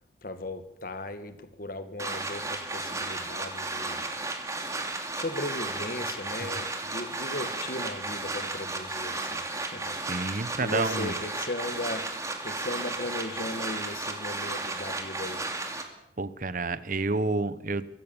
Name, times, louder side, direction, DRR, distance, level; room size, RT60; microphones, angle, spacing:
voice 1, 0.2-4.1 5.1-12.1 12.4-15.5, left 2 dB, 50° left, 10 dB, 2.0 m, -37 dB
sound 1, 2.0-15.8, right 2 dB, 15° right, 2.4 m, -34 dB
voice 2, 10.1-11.1 16.2-17.9, right 3 dB, 45° right, 15 dB, 1.0 m, -29 dB
24.0 x 15.0 x 7.2 m, 0.86 s
head